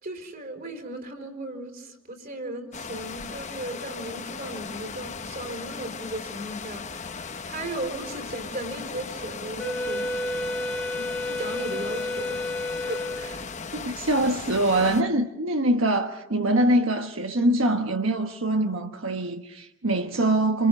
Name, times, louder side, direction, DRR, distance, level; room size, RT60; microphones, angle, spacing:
voice 1, 0.0-6.8 7.4-10.0 10.9-12.4 12.8-13.4, right 1 dB, 45° right, 4.4 m, -36 dB
sound 1, 2.7-15.0, left 5 dB, 35° left, 0.9 m, -37 dB
Wind instrument woodwind instrument, 9.6-13.4, left 1 dB, 5° left, 1.6 m, -31 dB
voice 2, 13.7-20.7, right 1 dB, 85° right, 1.3 m, -24 dB
28.0 x 28.0 x 5.4 m
head